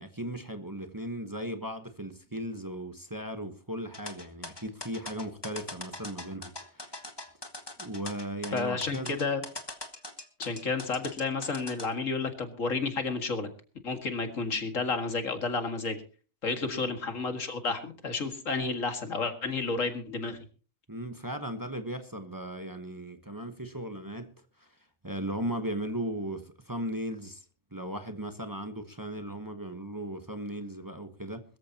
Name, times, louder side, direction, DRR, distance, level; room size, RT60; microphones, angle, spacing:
voice 1, 0.0-7.0 7.8-9.2 16.6-16.9 20.9-24.3 24.6-24.7 25.0-27.4 27.7-31.4, right 1 dB, 15° right, 1.1 m, -37 dB
sound 1, 3.9-11.9, left 2 dB, 20° left, 1.5 m, -41 dB
voice 2, 8.5-9.4 10.4-13.5 13.8-16.0 16.4-20.4, left 4 dB, 85° left, 2.3 m, -31 dB
21.5 x 14.0 x 2.9 m
omnidirectional pair, 1.3 m